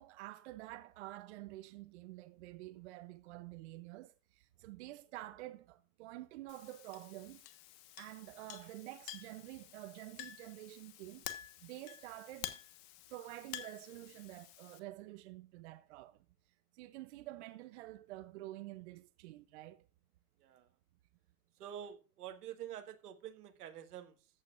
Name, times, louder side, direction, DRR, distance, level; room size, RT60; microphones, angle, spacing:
voice 1, 0.0-7.5 8.0-12.6 13.1-16.2 16.7-19.9, right 17 dB, 45° right, 0.7 m, -49 dB
Chink clink, 6.5-14.8, left 13 dB, 40° left, 1.2 m, -50 dB
voice 2, 20.4-20.7 21.6-24.3, right 10 dB, 80° right, 1.8 m, -48 dB
14.0 x 8.5 x 2.4 m
supercardioid pair, 150°, 46 cm